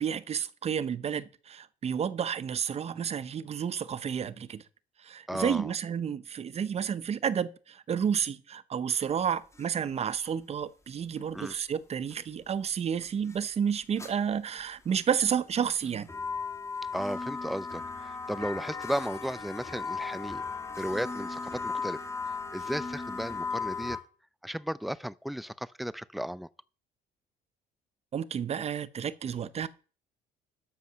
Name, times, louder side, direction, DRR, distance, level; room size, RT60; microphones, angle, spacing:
voice 1, 0.0-4.6 5.0-16.1 28.1-29.7, right 7 dB, 40° right, 0.8 m, -31 dB
voice 2, 5.3-5.7 11.3-11.5 16.9-20.4 20.8-22.0 22.5-24.0 24.4-26.5, equal, ahead, 0.4 m, -35 dB
sound 1, 9.3-9.6 10.2-10.3 11.2-11.5 12.1-12.2 13.0-13.4 14.0-14.1 14.9-15.4 15.8-24.0, left 4 dB, 15° left, 2.7 m, -36 dB
12.5 x 5.5 x 6.8 m
cardioid pair, 110°, 17 cm